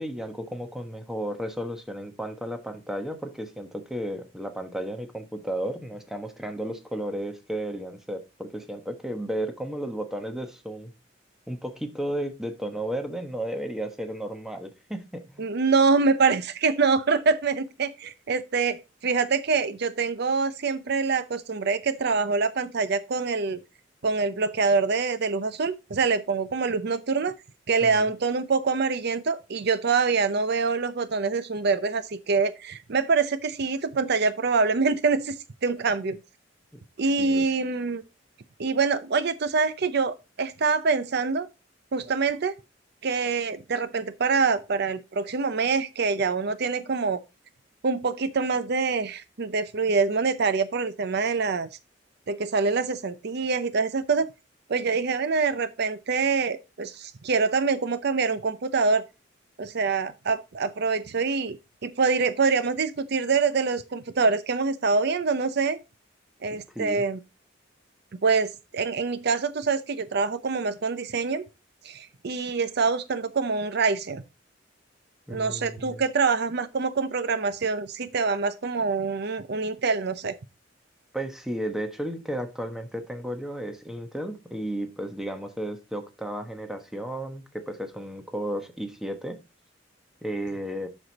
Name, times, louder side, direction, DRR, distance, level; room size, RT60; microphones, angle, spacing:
voice 1, 0.0-10.9 11.5-15.5 27.8-28.1 37.2-37.4 66.7-67.0 75.3-76.0 81.1-89.4 90.2-90.9, right 1 dB, ahead, 1.1 m, -33 dB
voice 2, 15.4-23.6 24.0-27.3 27.7-35.3 35.6-36.2 37.0-38.0 38.6-41.5 41.9-42.5 43.0-47.2 47.8-51.7 52.3-54.3 54.7-59.0 59.6-65.8 66.4-67.2 68.2-71.4 71.8-74.2 75.3-80.4, right 4 dB, 60° right, 0.6 m, -25 dB
7.9 x 6.3 x 4.0 m
head